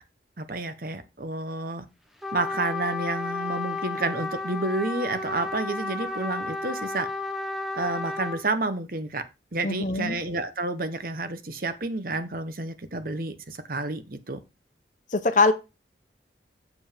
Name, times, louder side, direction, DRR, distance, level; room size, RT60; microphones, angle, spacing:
voice 1, 0.4-1.9 2.3-7.1 7.8-9.2 9.5-14.4, right 2 dB, 50° right, 1.0 m, -30 dB
Trumpet, 2.2-8.4, left 2 dB, ahead, 0.9 m, -32 dB
voice 2, 9.6-10.2 15.1-15.5, left 3 dB, 45° left, 0.9 m, -22 dB
7.1 x 5.1 x 5.1 m
head